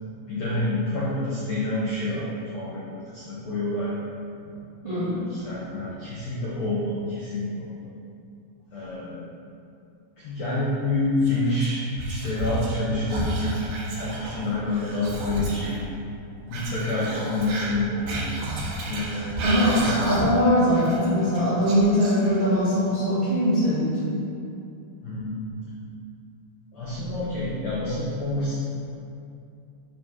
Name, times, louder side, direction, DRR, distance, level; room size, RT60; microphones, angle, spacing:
voice 1, 0.3-2.3 2.5-4.0 5.0-7.7 8.7-9.3 10.2-13.7 13.9-15.8 16.5-18.2 18.9-19.3 19.6-20.0 25.0-25.6 26.7-28.5, left 2 dB, 80° left, -7 dB, 1.5 m, -28 dB
voice 2, 4.8-5.2 19.4-24.2, equal, 40° right, -11 dB, 0.7 m, -21 dB
Whispering, 11.2-12.8 13.1-15.7 16.5-20.5 20.7-22.6, right 1 dB, 80° right, 3.8 m, -32 dB
9.2 x 3.7 x 6.1 m, 2.5 s
omnidirectional pair, 4.9 m